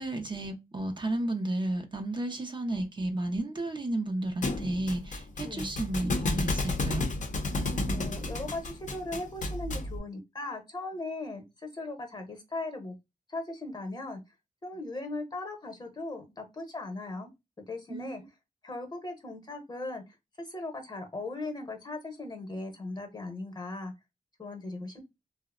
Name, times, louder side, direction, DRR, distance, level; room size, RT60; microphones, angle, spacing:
voice 1, 0.0-7.1 17.9-18.3 24.8-25.0, right 1 dB, 35° right, 0.5 m, -33 dB
Thump thud, 4.4-10.0, left 2 dB, 60° left, 0.6 m, -32 dB
voice 2, 5.4-5.7 7.5-12.9 13.3-14.2 14.6-17.3 17.7-18.2 18.6-23.9 24.4-25.0, left 2 dB, 30° left, 0.9 m, -38 dB
2.7 x 2.0 x 2.3 m
wide cardioid pair, 80°, 14 cm